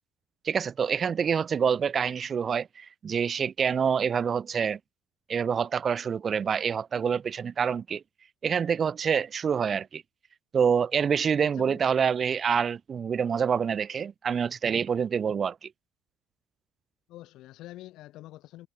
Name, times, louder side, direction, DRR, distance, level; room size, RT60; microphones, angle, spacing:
voice 1, 0.4-4.8 5.3-8.0 8.4-10.0 10.5-15.7, right 7 dB, 40° right, 0.3 m, -26 dB
voice 2, 11.4-11.9 17.1-18.7, left 16 dB, 70° left, 3.8 m, -46 dB
supercardioid pair, 80°, 0 cm